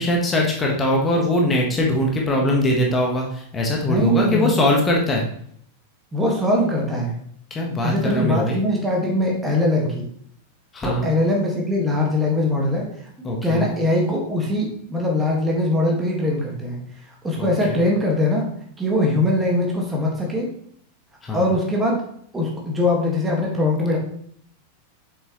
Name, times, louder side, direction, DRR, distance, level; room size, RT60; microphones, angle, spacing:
voice 1, 0.0-5.2 7.5-8.6 10.7-11.1 13.2-13.6 17.4-17.8 21.2-21.4, left 1 dB, 20° left, -1 dB, 1.5 m, -21 dB
voice 2, 3.8-4.6 6.1-7.2 7.8-10.1 10.8-12.9 13.4-16.8 17.2-18.4 18.8-20.5 21.3-22.0 22.3-24.0, left 1 dB, 10° right, -2 dB, 1.9 m, -21 dB
7.7 x 5.9 x 3.2 m, 0.66 s
figure-of-eight pair, 90°, 0 cm